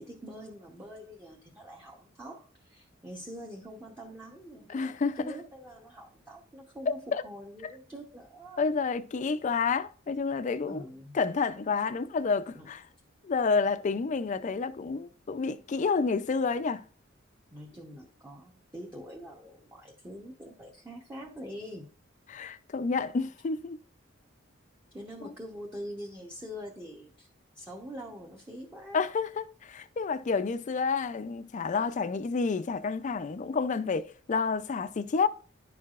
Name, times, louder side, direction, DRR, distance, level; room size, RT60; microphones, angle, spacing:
voice 1, 0.0-8.7 10.7-11.2 12.5-12.7 17.5-21.9 24.9-27.3 27.5-29.0, equal, 10° right, 0.8 m, -44 dB
voice 2, 4.7-5.3 7.1-7.2 8.6-10.9 11.1-12.8 13.2-16.8 22.3-23.8 25.2-25.3 28.9-35.3, left 4 dB, 40° left, 0.4 m, -29 dB
10.5 x 4.6 x 2.4 m
head